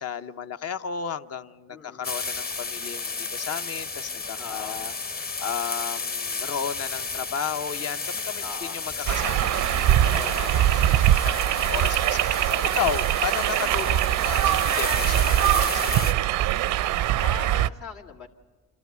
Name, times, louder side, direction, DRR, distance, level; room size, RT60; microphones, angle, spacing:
voice 1, 0.0-4.9 5.4-8.4 8.7-10.5 11.2-16.1, left 7 dB, 55° left, 10 dB, 0.8 m, -33 dB
voice 2, 1.7-2.1 4.4-4.8 8.4-8.8 10.1-10.7 13.5-13.6 17.2-18.3, left 5 dB, 75° left, 0 dB, 2.1 m, -40 dB
sound 1, 2.0-16.1, left 4 dB, 30° left, 0.9 m, -33 dB
sound 2, 9.1-17.7, right 13 dB, 80° right, 0.5 m, -22 dB
27.5 x 13.0 x 9.3 m, 1.5 s
cardioid pair, 90°, 30 cm